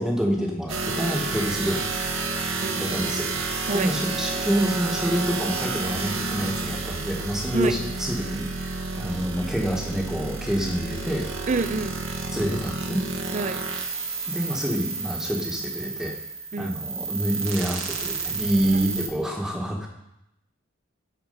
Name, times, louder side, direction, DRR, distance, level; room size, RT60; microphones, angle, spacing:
voice 1, 0.0-1.9 2.6-3.3 3.7-11.5 12.3-13.0 14.3-16.1 16.6-19.9, equal, 5° right, -1 dB, 1.2 m, -27 dB
sound 1, 0.7-19.1, right 4 dB, 65° right, 1.1 m, -30 dB
voice 2, 2.6-3.0 3.7-3.9 7.5-7.7 11.5-12.0 13.3-13.6 16.5-16.8, right 3 dB, 35° right, 11 dB, 0.4 m, -27 dB
11.0 x 4.3 x 5.3 m, 0.85 s
head